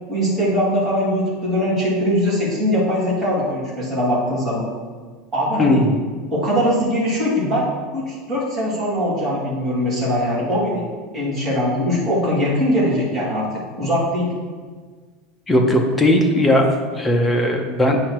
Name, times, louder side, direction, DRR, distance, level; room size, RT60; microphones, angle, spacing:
voice 1, 0.0-4.6 5.3-5.8 6.3-7.7 7.9-10.9 11.1-13.5 13.8-14.3, equal, 15° right, -9 dB, 2.3 m, -21 dB
voice 2, 5.6-6.0 15.5-18.0, left 1 dB, 10° left, 1 dB, 0.7 m, -17 dB
9.1 x 5.6 x 3.0 m, 1.5 s
supercardioid pair, 170°, 0 cm